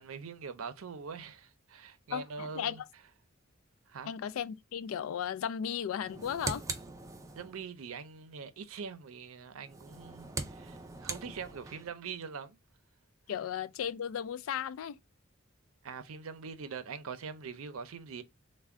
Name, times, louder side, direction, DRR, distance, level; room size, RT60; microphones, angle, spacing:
voice 1, 0.0-2.8 3.9-4.1 7.3-12.6 15.8-18.2, right 5 dB, 90° right, 0.5 m, -43 dB
voice 2, 2.1-2.9 4.0-6.6 13.3-15.0, left 8 dB, 80° left, 0.3 m, -35 dB
sound 1, 6.0-7.6 9.6-11.9, right 3 dB, 15° right, 0.4 m, -41 dB
3.3 x 2.2 x 3.5 m
head